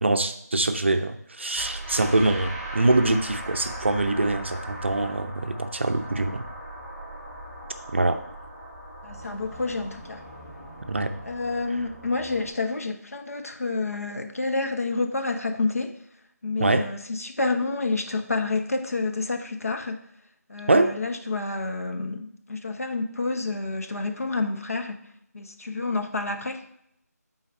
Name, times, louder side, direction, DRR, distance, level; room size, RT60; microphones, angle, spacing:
voice 1, 0.0-6.4 7.9-8.2 10.9-11.1 16.6-16.8 20.7-20.9, right 2 dB, 45° right, 7 dB, 0.5 m, -23 dB
sound 1, 1.5-12.5, right 1 dB, ahead, 2.2 m, -39 dB
voice 2, 9.0-10.2 11.2-16.0 16.4-20.0 20.5-25.0 25.3-26.6, left 3 dB, 55° left, 5 dB, 0.9 m, -29 dB
8.3 x 4.0 x 4.4 m, 0.74 s
figure-of-eight pair, 170°, 9 cm